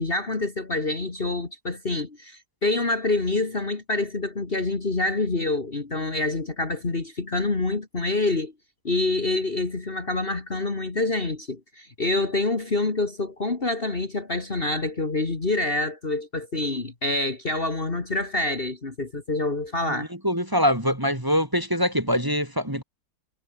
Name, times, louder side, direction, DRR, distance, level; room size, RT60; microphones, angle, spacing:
voice 1, 0.0-8.5 8.8-20.1, left 2 dB, 30° left, 2.3 m, -26 dB
voice 2, 19.9-22.8, equal, 10° right, 2.9 m, -24 dB
omnidirectional pair, 1.9 m